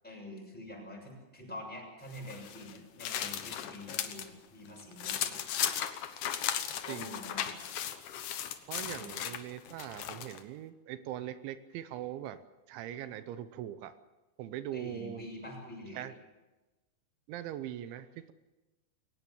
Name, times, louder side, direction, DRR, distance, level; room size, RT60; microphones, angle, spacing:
voice 1, 0.0-5.3 6.8-7.6 8.9-9.2 14.7-16.1, left 1 dB, ahead, -1 dB, 6.5 m, -46 dB
sound 1, 2.1-4.3 4.6-10.4, left 10 dB, 75° left, 1.8 m, -36 dB
voice 2, 6.9-7.2 8.7-12.4 12.7-13.9 14.4-15.2 15.9-16.1 17.3-18.3, right 12 dB, 85° right, 12 dB, 3.3 m, -41 dB
22.5 x 19.0 x 7.1 m, 1.1 s
omnidirectional pair, 5.3 m